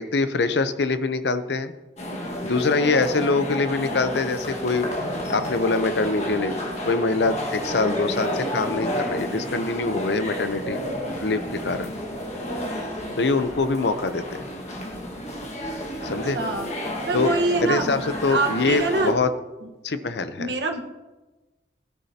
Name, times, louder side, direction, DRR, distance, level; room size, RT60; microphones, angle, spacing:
voice 1, 0.0-1.7 2.4-4.9 5.3-6.6 6.9-10.8 11.2-11.9 13.2-14.4 16.0-16.4 17.1-17.3 17.6-19.3 19.8-20.5, left 3 dB, 75° left, 11 dB, 0.7 m, -24 dB
sound 1, 2.0-19.1, left 1 dB, 40° left, 1.7 m, -31 dB
voice 2, 16.0-16.7 17.1-19.2 19.6-19.7 20.4-20.8, right 3 dB, 75° right, 3 dB, 1.3 m, -26 dB
17.5 x 9.9 x 2.9 m, 1.1 s
head